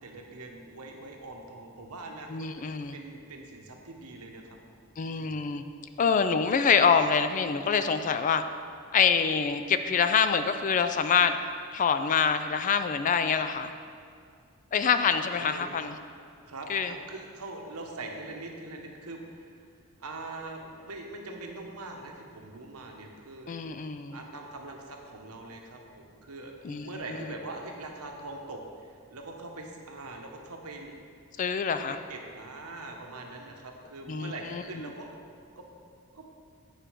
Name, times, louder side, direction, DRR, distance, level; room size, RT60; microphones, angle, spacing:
voice 1, 0.0-4.4 5.1-5.3 15.4-15.7 16.5-19.7 20.0-23.5 24.1-31.0 31.8-35.1 35.6-35.7 36.1-36.3, right 2 dB, 90° right, 2 dB, 1.0 m, -42 dB
voice 2, 2.3-3.0 5.0-5.6 6.0-8.4 8.9-11.4 11.7-13.7 14.7-16.0 16.7-16.9 23.5-24.2 26.6-26.9 31.4-32.0 34.1-34.9, left 6 dB, 35° left, 10 dB, 0.3 m, -25 dB
9.0 x 4.9 x 4.5 m, 2.3 s
head